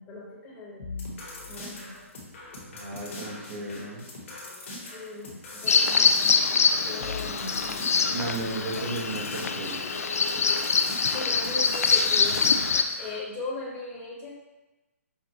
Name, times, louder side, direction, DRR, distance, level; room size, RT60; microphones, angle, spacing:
voice 1, 0.0-2.0 4.9-6.2 6.9-8.0 8.8-8.9 11.1-12.5 13.0-14.3, left 3 dB, 20° left, -4 dB, 1.1 m, -38 dB
sound 1, 0.8-13.2, left 2 dB, 60° left, 1.4 m, -42 dB
voice 2, 2.6-4.0 8.1-10.1, right 2 dB, 50° right, -4 dB, 1.3 m, -35 dB
Bird vocalization bird call bird song, 5.7-12.8, left 5 dB, 85° left, 0.3 m, -24 dB
5.4 x 2.5 x 2.9 m, 1.0 s
hypercardioid pair, 145°, 8 cm